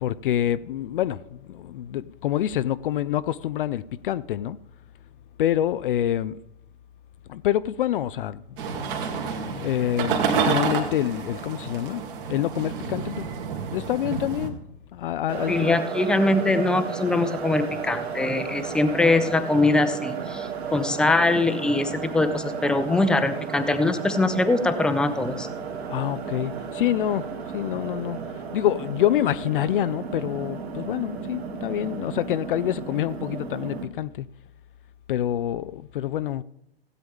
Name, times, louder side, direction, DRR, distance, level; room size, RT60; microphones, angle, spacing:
voice 1, 0.0-4.6 5.4-6.4 7.3-8.4 9.6-12.0 12.3-13.3 13.7-14.6 14.9-15.8 25.9-27.3 27.5-34.3 35.1-36.4, left 12 dB, 55° left, 0.4 m, -26 dB
sound 1, 8.6-14.5, right 5 dB, 55° right, 2.2 m, -29 dB
sound 2, 15.3-33.9, right 6 dB, 70° right, 1.9 m, -34 dB
voice 2, 15.5-25.5, left 2 dB, ahead, 0.6 m, -22 dB
16.0 x 8.8 x 3.6 m
figure-of-eight pair, 115°, 32 cm